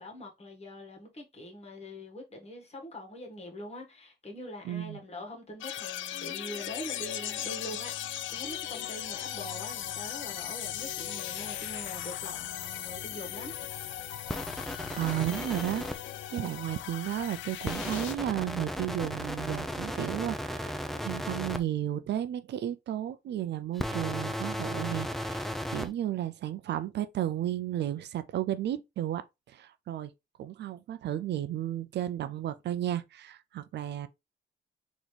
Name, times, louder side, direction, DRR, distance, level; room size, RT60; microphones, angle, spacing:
voice 1, 0.0-13.5, left 1 dB, 30° left, 1.7 m, -43 dB
voice 2, 4.6-5.0 14.9-15.9 16.3-29.2 29.5-30.1 30.4-34.1, right 12 dB, 60° right, 0.4 m, -33 dB
sound 1, 5.6-18.1, left 12 dB, 75° left, 0.5 m, -38 dB
sound 2, 14.3-16.0 17.6-21.6 23.7-25.9, equal, ahead, 0.5 m, -35 dB
4.0 x 3.0 x 3.3 m
cardioid pair, 90°, 20 cm